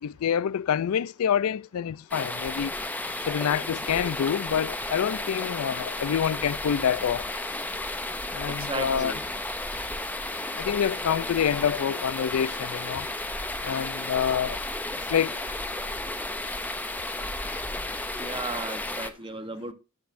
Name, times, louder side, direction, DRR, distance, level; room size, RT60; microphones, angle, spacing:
voice 1, 0.0-2.7 3.3-7.3 8.3-9.1 10.6-13.1 13.6-14.6 15.1-15.4, left 8 dB, 80° left, 0.4 m, -27 dB
sound 1, 2.1-19.1, left 2 dB, 10° left, 0.6 m, -33 dB
voice 2, 8.5-9.2 18.2-19.7, right 3 dB, 25° right, 1.0 m, -35 dB
11.5 x 8.0 x 2.6 m
head